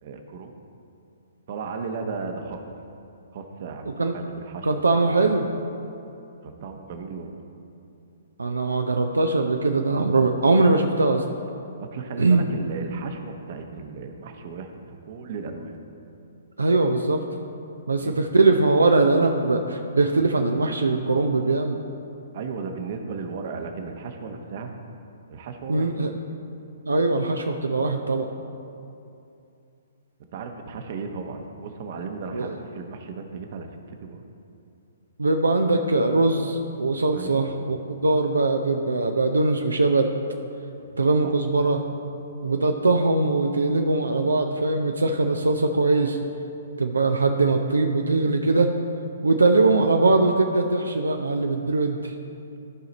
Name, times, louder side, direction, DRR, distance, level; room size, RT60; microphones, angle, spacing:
voice 1, 0.0-0.6 1.5-2.6 3.3-5.3 6.4-7.4 11.8-14.7 15.1-15.8 18.0-18.2 22.3-24.7 25.3-25.9 30.3-34.2 37.1-37.4 40.8-40.9, right 4 dB, 50° right, 5 dB, 0.9 m, -35 dB
voice 2, 4.6-5.4 8.4-11.2 12.2-12.4 16.6-17.2 17.9-21.8 25.7-26.1 26.9-28.3 32.3-32.5 35.2-40.1 40.9-41.8 42.4-46.2 46.8-48.7 49.2-52.1, right 3 dB, 85° right, 4 dB, 0.5 m, -21 dB
14.0 x 5.1 x 4.1 m, 2.6 s
figure-of-eight pair, 125°, 0 cm